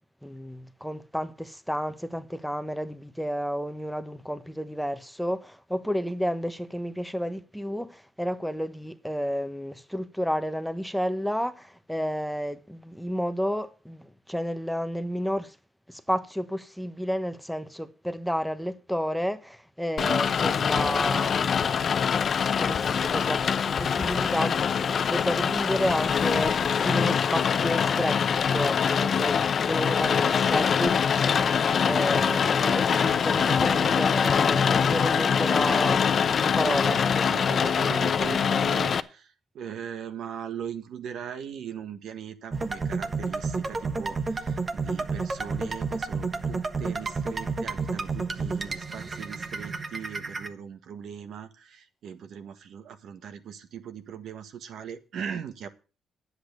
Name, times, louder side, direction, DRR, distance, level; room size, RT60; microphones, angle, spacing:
voice 1, 0.2-15.6 15.9-21.7 22.6-23.4 23.8-28.2 28.5-37.0, equal, ahead, 1.0 m, -31 dB
Rain, 20.0-39.0, left 7 dB, 50° left, 0.8 m, -24 dB
voice 2, 36.6-55.7, right 8 dB, 70° right, 1.5 m, -39 dB
sound 1, 42.5-50.5, right 4 dB, 30° right, 1.2 m, -31 dB
10.5 x 8.1 x 6.7 m
cardioid pair, 90°, 0 cm